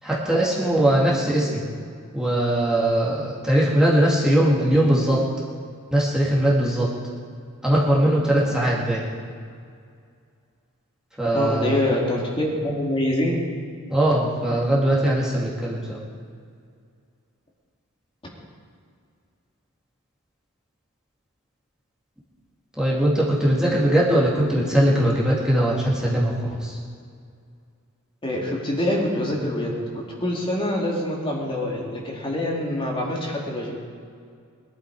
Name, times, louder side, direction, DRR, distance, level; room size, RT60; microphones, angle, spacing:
voice 1, 0.0-1.6 2.1-5.2 5.9-6.9 7.6-9.0 11.2-11.9 13.9-16.0 22.8-26.8, right 1 dB, 5° right, -6 dB, 2.4 m, -20 dB
voice 2, 11.3-13.4 28.2-33.8, left 1 dB, 25° left, -3 dB, 2.6 m, -25 dB
22.0 x 12.0 x 4.9 m, 2.3 s
head